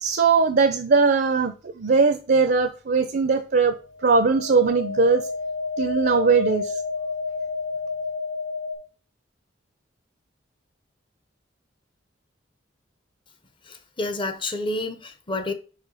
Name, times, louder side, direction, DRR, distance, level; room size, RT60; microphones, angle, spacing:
voice 1, 0.0-3.8 4.0-5.2 5.8-6.8, right 4 dB, 55° right, 0.5 m, -20 dB
sound 1, 4.0-8.7, left 4 dB, 80° left, 2.4 m, -30 dB
voice 2, 13.7-15.5, left 2 dB, 25° left, 0.7 m, -29 dB
5.0 x 4.4 x 5.5 m
head